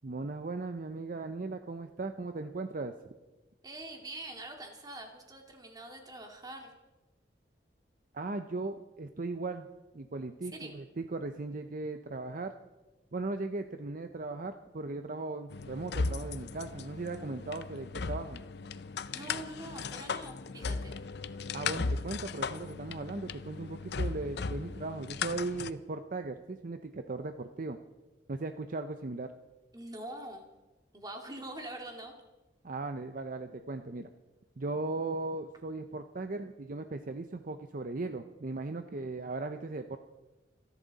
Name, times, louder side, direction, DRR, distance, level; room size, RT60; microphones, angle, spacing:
voice 1, 0.0-2.9 8.1-9.7 9.9-12.5 13.1-18.4 21.5-27.8 28.3-29.3 32.6-34.1 34.6-40.0, right 3 dB, 50° right, 8 dB, 0.7 m, -37 dB
voice 2, 3.6-6.7 10.4-10.8 19.1-21.0 29.7-30.5 30.9-32.1, right 1 dB, 20° right, 3 dB, 2.3 m, -44 dB
sound 1, 15.5-25.7, left 4 dB, 65° left, 0.6 m, -37 dB
27.0 x 11.5 x 4.1 m, 1.1 s
head